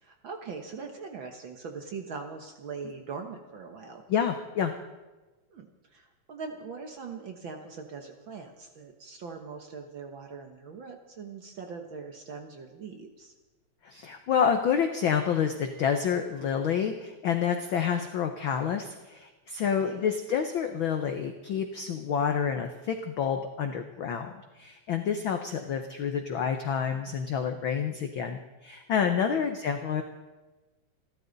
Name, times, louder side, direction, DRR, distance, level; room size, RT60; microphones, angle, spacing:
voice 1, 0.0-4.0 5.5-13.3 19.8-20.1 29.2-29.4, right 5 dB, 55° right, 4 dB, 1.5 m, -41 dB
voice 2, 4.1-4.7 13.8-30.0, left 7 dB, 80° left, 6 dB, 1.1 m, -28 dB
28.5 x 13.0 x 4.0 m, 1.2 s
omnidirectional pair, 3.4 m